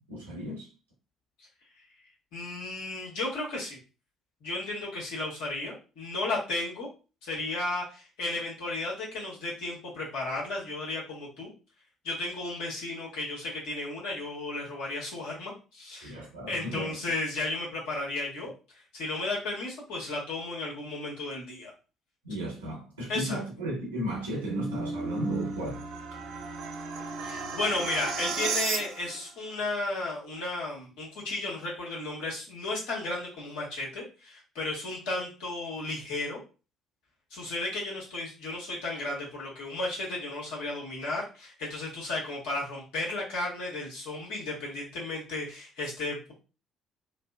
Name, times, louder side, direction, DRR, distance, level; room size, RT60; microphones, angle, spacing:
voice 1, 0.1-0.7 16.0-17.0 22.2-25.8, right 1 dB, 80° right, 1.0 m, -34 dB
voice 2, 2.3-3.8 4.4-6.9 7.2-11.5 12.0-16.2 16.5-18.5 18.9-21.7 23.1-23.4 27.2-36.4 37.3-46.3, left 2 dB, 65° left, 1.2 m, -34 dB
sound 1, 24.1-29.3, right 4 dB, 60° right, 0.5 m, -34 dB
3.1 x 2.0 x 2.3 m
figure-of-eight pair, 50°, 0 cm